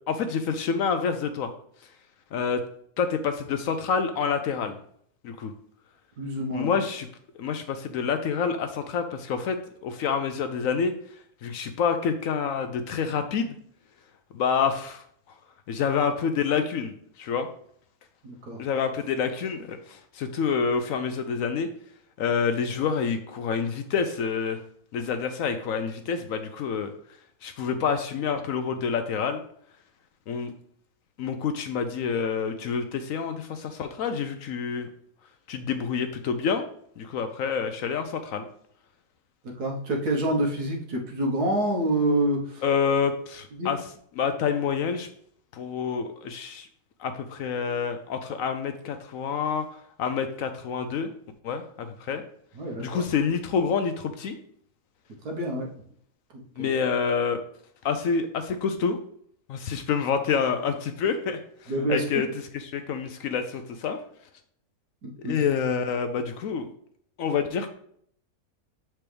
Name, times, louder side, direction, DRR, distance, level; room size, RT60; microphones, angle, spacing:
voice 1, 0.1-1.5 2.3-2.6 3.0-4.8 5.2-5.5 6.5-7.1 7.4-10.9 11.4-13.5 14.3-15.0 15.7-16.9 17.2-17.5 18.6-21.7 22.2-24.6 24.9-26.9 27.4-29.4 30.3-30.5 31.2-34.9 35.5-36.6 37.0-38.5 42.6-43.8 44.2-45.1 45.5-46.7 47.0-49.6 50.0-51.1 51.4-52.2 52.8-54.4 56.6-57.4 57.8-59.0 59.5-62.3 62.5-64.0 65.2-66.7 67.2-67.7, left 6 dB, 70° left, 8 dB, 0.9 m, -27 dB
voice 2, 6.2-6.7 18.2-18.6 39.4-42.6 43.6-43.7 52.5-53.0 55.2-55.7 56.3-56.7 61.7-62.2 65.0-65.3, right 1 dB, 75° right, 1 dB, 1.7 m, -27 dB
7.3 x 4.5 x 3.3 m, 0.65 s
omnidirectional pair, 1.7 m